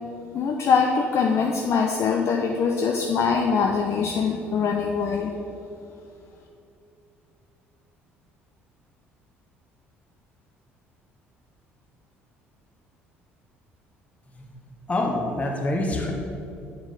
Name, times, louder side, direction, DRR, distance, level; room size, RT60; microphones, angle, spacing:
voice 1, 0.3-5.3, left 5 dB, 45° left, 1 dB, 0.6 m, -23 dB
voice 2, 14.9-16.1, left 2 dB, 20° left, 0 dB, 1.5 m, -26 dB
7.5 x 4.9 x 6.5 m, 2.7 s
figure-of-eight pair, 55°, 7 cm